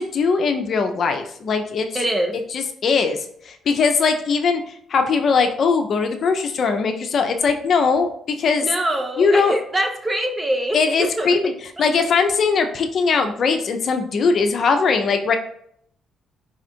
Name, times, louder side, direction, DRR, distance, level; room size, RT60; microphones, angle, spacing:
voice 1, 0.1-1.9 2.5-3.2 3.4-8.7 9.2-9.5 10.7-11.5 11.8-15.4, left 5 dB, 55° left, 6 dB, 0.6 m, -20 dB
voice 2, 1.9-2.4 8.5-11.4 11.8-11.9, right 1 dB, 20° right, 4 dB, 0.8 m, -24 dB
5.0 x 2.4 x 4.3 m, 0.67 s
cardioid pair, 90°, 0 cm